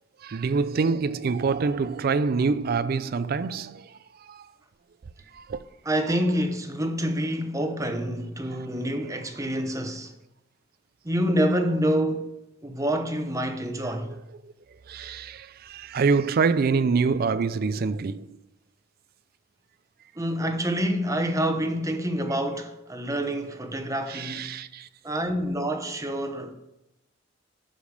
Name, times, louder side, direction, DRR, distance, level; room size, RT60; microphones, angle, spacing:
voice 1, 0.2-4.5 5.3-5.6 14.4-14.5 14.9-18.3 24.1-24.9, right 4 dB, 50° right, 0.4 m, -26 dB
voice 2, 5.8-10.1 11.0-12.3 12.6-14.1 17.3-17.4 20.2-24.5 25.0-26.5, equal, 15° right, 0.9 m, -27 dB
11.5 x 5.1 x 5.1 m
head